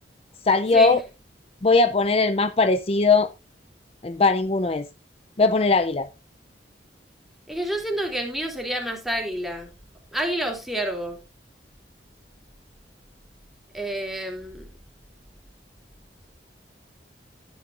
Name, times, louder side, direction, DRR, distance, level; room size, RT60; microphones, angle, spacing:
voice 1, 0.5-1.0 1.6-3.3 4.0-4.8 5.4-6.1, left 3 dB, 35° left, 0.6 m, -19 dB
voice 2, 7.5-9.7 10.1-11.2 13.7-14.7, right 1 dB, ahead, 3.1 m, -28 dB
13.5 x 9.6 x 2.5 m
head